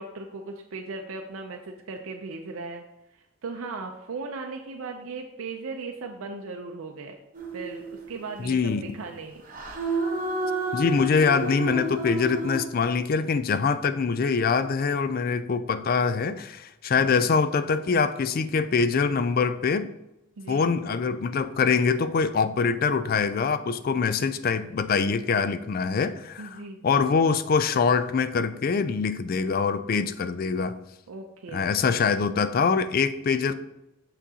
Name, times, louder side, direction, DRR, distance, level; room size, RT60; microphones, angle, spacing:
voice 1, 0.0-2.8 3.1-7.1 7.5-9.4 20.4-20.7 26.4-26.8 31.1-32.0, right 3 dB, 80° right, 3 dB, 0.5 m, -37 dB
sound 1, 7.3-8.0 9.5-12.6, right 2 dB, 40° right, 0.9 m, -30 dB
voice 2, 8.4-8.8 10.7-19.9 20.5-30.7 31.5-33.5, left 5 dB, 45° left, 13 dB, 0.3 m, -24 dB
6.7 x 6.0 x 2.8 m, 0.92 s
head